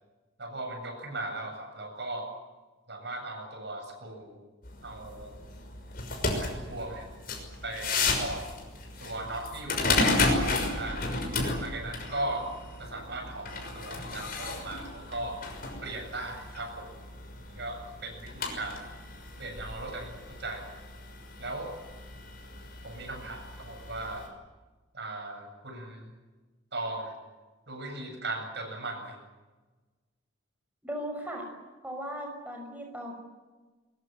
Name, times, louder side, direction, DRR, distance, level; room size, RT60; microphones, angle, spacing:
voice 1, 0.4-2.3 2.9-4.4 4.8-5.3 6.3-7.1 7.6-8.4 9.0-11.1 11.6-12.4 12.8-15.4 15.8-16.9 17.4-18.9 19.4-20.7 21.4-21.7 22.8-24.3 24.9-26.1 26.7-27.1 27.7-29.2, right 2 dB, 60° right, 4 dB, 7.9 m, -38 dB
sound 1, 4.6-24.3, left 3 dB, 50° left, 6.0 m, -33 dB
voice 2, 30.8-31.4 31.8-33.1, equal, 10° right, 1 dB, 5.9 m, -37 dB
22.5 x 22.0 x 9.3 m, 1.3 s
head